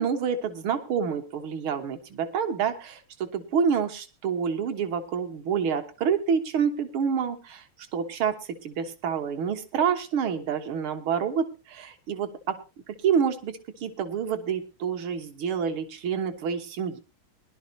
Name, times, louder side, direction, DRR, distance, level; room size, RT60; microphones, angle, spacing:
voice 1, 0.0-7.6 7.9-12.6 12.9-17.0, right 7 dB, 75° right, 7 dB, 2.2 m, -28 dB
21.5 x 11.5 x 2.8 m, 0.30 s
omnidirectional pair, 2.3 m